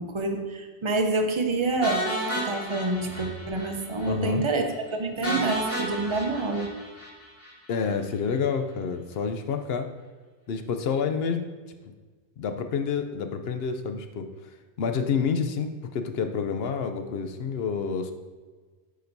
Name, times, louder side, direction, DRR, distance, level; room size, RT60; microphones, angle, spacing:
voice 1, 0.0-2.1 2.3-4.6 4.9-6.8, right 3 dB, 30° right, 3 dB, 0.6 m, -27 dB
sound 1, 1.8-3.7 4.0-4.1 4.4-4.5 5.2-7.5, right 1 dB, 10° left, 2.4 m, -31 dB
voice 2, 4.1-4.5 7.7-9.9 10.5-11.5 12.4-14.3 14.8-18.1, left 6 dB, 65° left, 7 dB, 0.8 m, -28 dB
10.0 x 5.1 x 2.7 m, 1.4 s
omnidirectional pair, 1.2 m